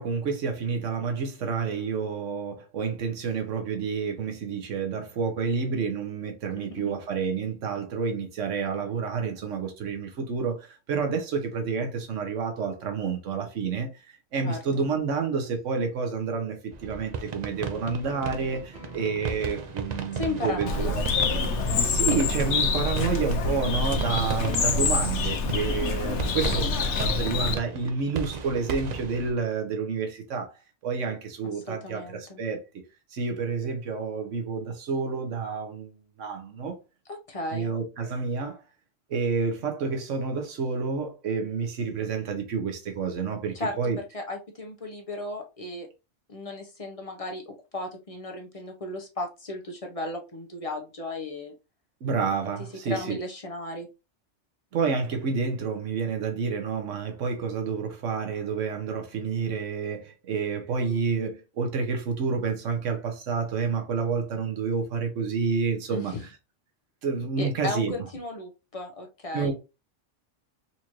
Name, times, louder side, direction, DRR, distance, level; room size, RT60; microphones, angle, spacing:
voice 1, 0.0-21.1 21.8-30.5 30.8-32.6 33.1-36.8 37.5-38.6 39.1-44.0 52.0-53.2 54.7-66.1 67.0-67.9 69.3-69.5, right 5 dB, 85° right, 1.3 m, -29 dB
voice 2, 14.4-14.9 20.1-21.0 25.5-25.8 31.5-32.4 37.1-37.7 43.5-45.9 46.3-51.5 52.9-53.9 65.9-66.2 67.4-69.5, left 2 dB, 35° left, 0.7 m, -35 dB
sound 1, 16.7-29.3, right 5 dB, 55° right, 0.5 m, -36 dB
Guitar, 17.5-25.0, left 1 dB, 55° left, 1.5 m, -46 dB
Bird, 20.7-27.6, left 4 dB, 70° left, 1.0 m, -26 dB
4.2 x 2.6 x 3.0 m
omnidirectional pair, 1.2 m